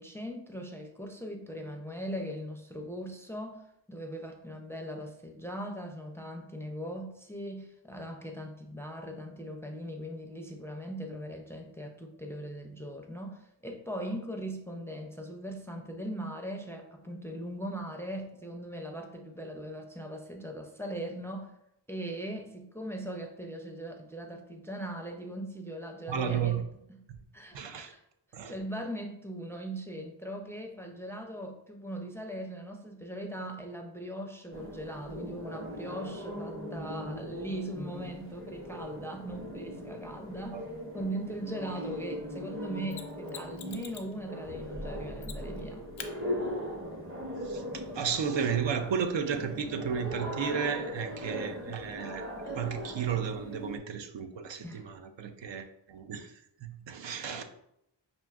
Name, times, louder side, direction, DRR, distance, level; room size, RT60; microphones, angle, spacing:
voice 1, 0.0-21.5 21.9-26.6 26.9-27.0 27.3-28.0 28.5-40.6 40.9-45.8 54.6-54.8, right 1 dB, 5° left, 3 dB, 0.4 m, -40 dB
voice 2, 26.1-26.6 27.1-27.2 27.5-27.9 28.3-28.5 40.5-40.6 47.4-47.6 47.9-56.3 56.6-57.4, right 7 dB, 70° right, 7 dB, 0.5 m, -33 dB
sound 1, 34.5-53.8, equal, 25° right, 0.7 m, -39 dB
Mechanisms, 42.9-44.2 45.2-45.6 46.0-46.1 48.9-49.0, left 8 dB, 75° left, 0.5 m, -45 dB
5.7 x 2.5 x 2.4 m, 0.79 s
wide cardioid pair, 65°, 47 cm